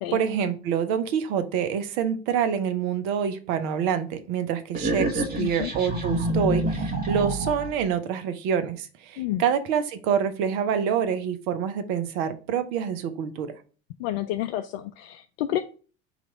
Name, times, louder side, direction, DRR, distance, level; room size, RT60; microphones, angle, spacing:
voice 1, 0.1-13.5, right 8 dB, 60° right, 9 dB, 0.8 m, -26 dB
sound 1, 4.7-7.8, right 1 dB, 30° right, 1.4 m, -27 dB
voice 2, 5.4-5.7 9.2-9.4 14.0-15.6, left 13 dB, 65° left, 7 dB, 0.5 m, -29 dB
4.0 x 3.0 x 4.5 m, 0.37 s
hypercardioid pair, 70°, 33 cm